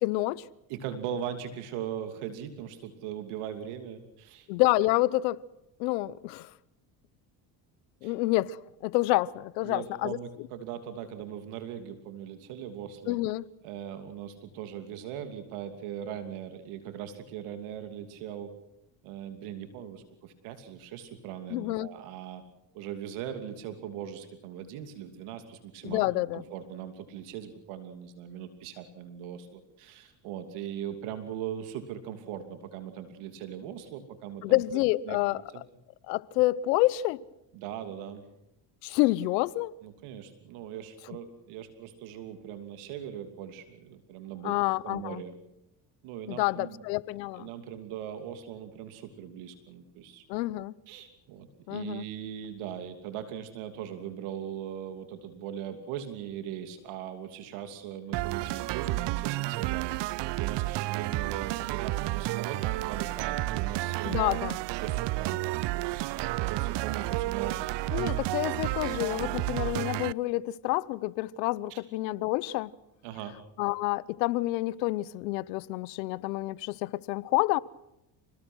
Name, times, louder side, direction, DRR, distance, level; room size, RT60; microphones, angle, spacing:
voice 1, 0.0-0.5 4.5-5.4 5.8-6.5 8.0-10.2 13.1-13.4 21.5-21.9 25.8-26.4 34.4-35.4 36.1-37.2 38.8-39.7 44.4-45.2 46.3-47.5 50.3-50.7 51.7-52.0 64.0-64.6 67.9-72.7 73.6-77.6, left 18 dB, 85° left, 1.0 m, -28 dB
voice 2, 0.7-4.5 8.0-8.1 9.6-13.2 13.6-18.5 19.0-22.4 22.7-34.6 35.1-35.6 37.5-38.2 39.8-44.6 44.8-45.3 46.0-46.9 47.3-50.2 50.9-59.9 60.4-64.1 64.7-65.4 65.7-68.2 71.7-71.8 73.0-73.3, right 9 dB, 75° right, 3.0 m, -40 dB
sound 1, 58.1-70.1, right 18 dB, 60° right, 0.7 m, -31 dB
28.5 x 19.5 x 6.3 m
supercardioid pair, 75°, 50 cm